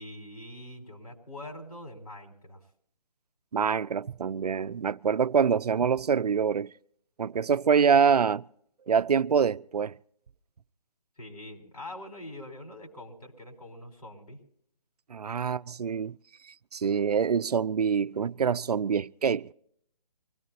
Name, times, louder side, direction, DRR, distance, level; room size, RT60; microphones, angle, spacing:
voice 1, 0.0-2.6 11.2-14.4, left 1 dB, 70° left, 5.0 m, -44 dB
voice 2, 3.5-6.7 7.2-8.4 8.9-10.0 15.1-16.2 16.7-19.5, right 6 dB, 70° right, 0.5 m, -25 dB
25.0 x 17.5 x 2.9 m
figure-of-eight pair, 150°, 21 cm